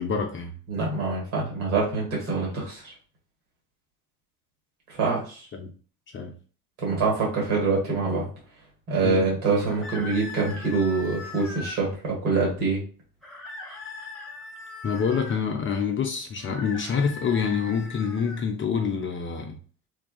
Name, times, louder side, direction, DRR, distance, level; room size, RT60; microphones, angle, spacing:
voice 1, 0.0-0.5 5.5-5.7 6.1-6.3 9.0-9.3 14.8-19.6, left 6 dB, 30° left, 0.4 m, -27 dB
voice 2, 0.7-2.9 5.0-5.4 6.8-8.3 8.9-12.8, right 4 dB, 65° right, 1.5 m, -25 dB
sound 1, 9.6-11.8 13.2-15.4 16.4-18.4, left 3 dB, ahead, 1.0 m, -40 dB
2.6 x 2.3 x 2.3 m
hypercardioid pair, 60°, 44 cm